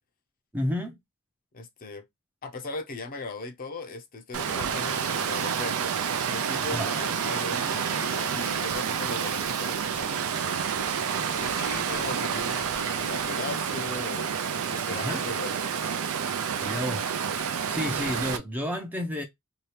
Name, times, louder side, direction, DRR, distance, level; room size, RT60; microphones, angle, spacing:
voice 1, 0.5-1.0 6.7-6.9 14.9-15.2 16.5-17.3 17.7-19.2, left 1 dB, 10° right, 0.5 m, -31 dB
voice 2, 1.5-2.0 2.4-6.0 6.2-10.7 11.4-14.3 14.7-15.6, left 3 dB, 40° left, 0.6 m, -38 dB
Water, 4.3-18.4, right 7 dB, 70° right, 0.4 m, -29 dB
2.8 x 2.3 x 3.2 m
head